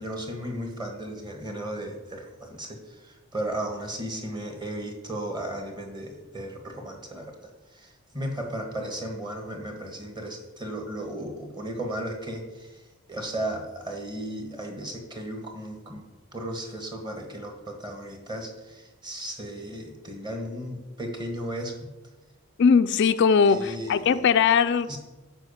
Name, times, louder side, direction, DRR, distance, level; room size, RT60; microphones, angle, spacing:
voice 1, 0.0-12.8 13.1-16.0 16.3-21.9 23.5-24.2 24.9-25.0, right 1 dB, 20° right, 3 dB, 1.5 m, -35 dB
voice 2, 22.6-24.9, left 6 dB, 55° left, 11 dB, 0.3 m, -20 dB
10.5 x 4.9 x 6.9 m, 1.1 s
head